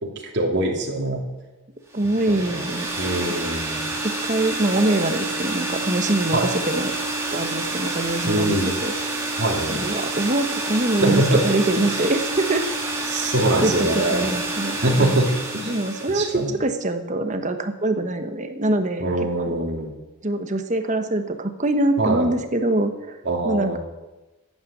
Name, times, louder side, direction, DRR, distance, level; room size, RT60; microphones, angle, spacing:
voice 1, 0.0-1.2 2.3-2.6 3.0-3.9 6.3-6.5 8.3-8.7 9.4-9.8 10.9-11.4 11.7-12.0 13.1-14.3 14.8-15.7 16.1-16.5 19.0-19.9 22.0-22.3 23.2-23.8, right 1 dB, 50° right, -1 dB, 2.7 m, -23 dB
sound 1, 1.9-16.4, right 2 dB, 10° right, 2.2 m, -28 dB
voice 2, 1.9-2.9 4.0-6.9 7.3-9.2 9.7-12.7 13.6-15.2 15.7-19.1 19.3-19.6 20.2-23.2 23.4-23.8, right 1 dB, 35° right, 7 dB, 1.2 m, -24 dB
13.5 x 9.2 x 7.3 m, 1.1 s
head